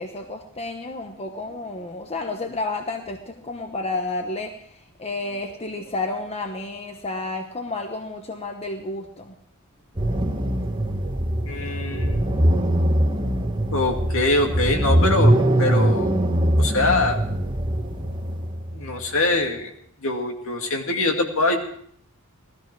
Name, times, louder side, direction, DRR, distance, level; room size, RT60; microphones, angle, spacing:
voice 1, 0.0-9.3 10.5-10.6, left 2 dB, 30° left, 4 dB, 1.1 m, -31 dB
sound 1, 10.0-19.4, right 1 dB, 20° right, 1.5 m, -22 dB
voice 2, 11.5-12.3 13.7-16.1 16.6-17.2 18.7-19.7 20.0-21.6, left 2 dB, 65° left, 2 dB, 2.4 m, -23 dB
17.5 x 13.5 x 4.7 m, 0.64 s
head